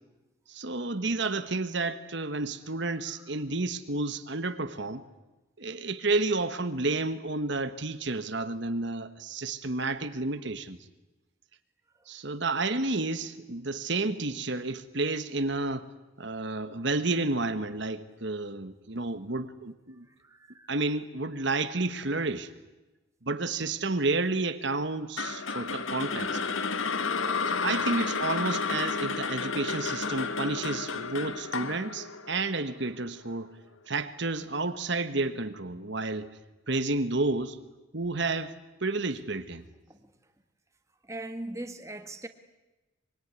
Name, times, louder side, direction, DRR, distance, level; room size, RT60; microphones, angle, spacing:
voice 1, 0.5-5.0 5.6-10.8 12.1-15.9 16.2-20.1 20.7-22.5 23.2-26.4 27.5-33.6 33.9-36.4 36.7-37.6 37.9-38.5 38.8-39.6, right 3 dB, 55° right, 1.3 m, -31 dB
voice 2, 19.9-20.8 39.9-40.3 41.0-42.3, right 2 dB, 15° right, 1.5 m, -42 dB
sound 1, 25.2-33.3, left 5 dB, 75° left, 1.8 m, -31 dB
25.0 x 24.0 x 9.8 m
head